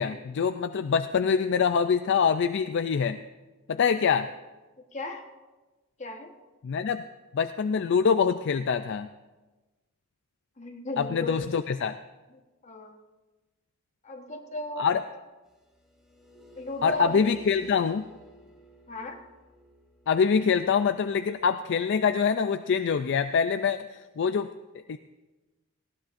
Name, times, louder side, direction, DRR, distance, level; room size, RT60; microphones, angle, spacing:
voice 1, 0.0-3.2 3.7-4.3 6.6-7.0 7.3-9.1 11.0-11.9 14.8-15.0 16.8-18.0 20.1-24.5 24.9-25.0, left 6 dB, 55° left, 9 dB, 0.4 m, -25 dB
voice 2, 4.9-5.2 6.0-6.3 10.6-11.5 12.3-13.0 14.0-14.9 16.5-17.2 18.9-19.2, left 2 dB, 35° left, 3 dB, 1.2 m, -36 dB
sound 1, 15.5-21.5 23.1-23.4, left 1 dB, 5° right, 2.5 m, -52 dB
19.0 x 16.5 x 2.6 m, 1.2 s
head